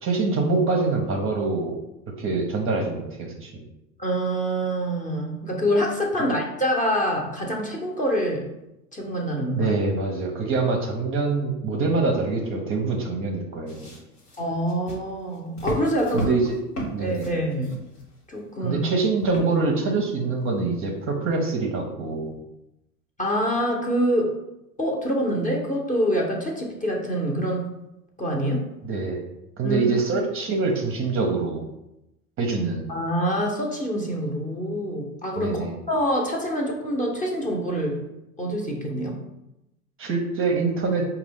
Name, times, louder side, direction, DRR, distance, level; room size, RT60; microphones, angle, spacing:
voice 1, 0.0-1.8 2.2-3.6 9.6-13.9 16.1-16.6 16.9-17.3 18.6-22.4 28.8-29.2 29.6-31.7 32.4-32.9 35.4-35.7 40.0-41.0, right 3 dB, 30° right, 1 dB, 0.6 m, -25 dB
voice 2, 4.0-8.5 8.9-9.7 14.4-16.3 17.0-17.7 18.3-18.8 23.2-24.4 24.8-27.7 28.2-28.7 29.6-29.8 32.9-38.0 38.4-39.2, equal, 15° left, -1 dB, 0.8 m, -25 dB
sound 1, 13.7-18.4 19.2-19.8 20.4-20.5, equal, 90° left, 1.1 m, -36 dB
5.1 x 2.3 x 3.4 m, 0.90 s
hypercardioid pair, 80°, 46 cm